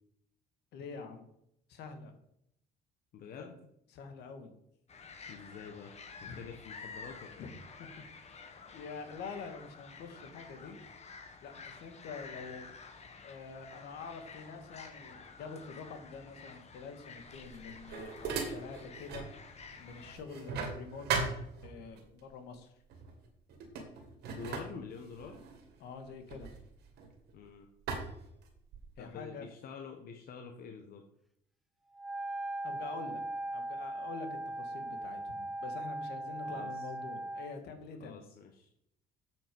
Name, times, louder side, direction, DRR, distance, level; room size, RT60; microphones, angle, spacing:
voice 1, 0.7-1.2 1.7-2.1 3.4-3.5 3.9-4.5 6.2-6.4 7.4-7.5 7.8-8.5 8.7-10.8 11.4-12.7 13.2-19.5 19.8-21.4 21.6-22.7 25.8-26.5 29.0-29.5 32.6-33.2 33.5-34.3 34.6-38.3, left 5 dB, 80° left, 7 dB, 1.8 m, -46 dB
voice 2, 3.1-3.5 5.3-5.9 6.3-7.5 24.2-25.4 27.3-27.7 29.0-31.0 36.4-36.8 38.0-38.7, left 6 dB, 60° left, 4 dB, 1.2 m, -47 dB
sound 1, 4.9-20.2, left 5 dB, 40° left, 1.6 m, -51 dB
sound 2, 17.3-19.4 19.7-22.0 22.9-23.1 23.5-27.3 27.9-29.0, right 5 dB, 75° right, 2.3 m, -39 dB
Wind instrument woodwind instrument, 31.9-37.6, right 1 dB, ahead, 0.8 m, -39 dB
8.6 x 6.2 x 5.3 m, 0.76 s
cardioid pair, 110°, 17 cm